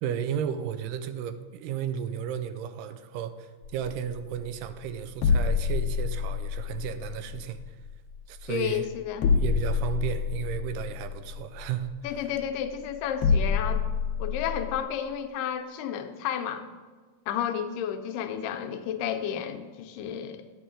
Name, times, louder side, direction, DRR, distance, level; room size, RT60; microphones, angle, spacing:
voice 1, 0.0-7.8 8.3-8.9 9.4-11.9, right 9 dB, 90° right, 10 dB, 2.3 m, -33 dB
sound 1, 3.6-14.8, left 5 dB, 70° left, 1.6 m, -28 dB
voice 2, 8.5-9.3 12.0-13.8 14.2-16.7 17.3-20.5, left 9 dB, 85° left, 7 dB, 2.2 m, -32 dB
9.9 x 9.4 x 3.7 m, 1.4 s
omnidirectional pair, 3.8 m